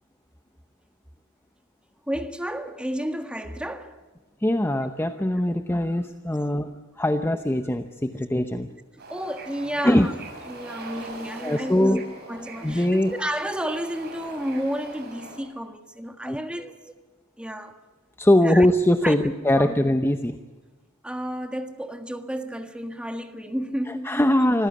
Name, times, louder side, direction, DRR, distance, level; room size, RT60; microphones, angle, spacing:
voice 1, 2.1-4.0 8.1-8.2 9.1-10.1 10.5-12.0 12.3-16.9 17.4-17.8 18.4-18.7 19.0-19.8 21.0-24.1, equal, 5° right, 1.6 m, -31 dB
voice 2, 4.4-8.7 9.8-10.1 11.4-12.0 12.6-13.1 16.2-16.7 18.2-20.4 24.0-24.7, left 1 dB, 10° left, 0.8 m, -22 dB
Bird / Ocean, 9.0-15.4, right 2 dB, 50° right, 6.7 m, -42 dB
25.5 x 16.0 x 8.5 m
head